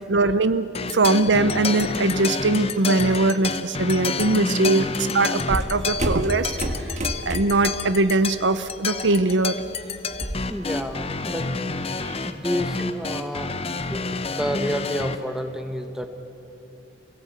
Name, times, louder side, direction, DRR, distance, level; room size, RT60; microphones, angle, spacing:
voice 1, 0.1-6.5 7.3-9.6, right 2 dB, 70° right, 12 dB, 0.7 m, -21 dB
sound 1, 0.7-15.2, left 4 dB, 30° left, 0.8 m, -29 dB
sound 2, 5.5-7.7 8.1-8.4 8.8-10.5, right 1 dB, 40° right, 1.6 m, -29 dB
voice 2, 10.5-11.5 12.2-13.5 13.9-16.1, equal, 5° right, 5 dB, 1.3 m, -30 dB
27.5 x 17.0 x 8.4 m, 2.9 s
head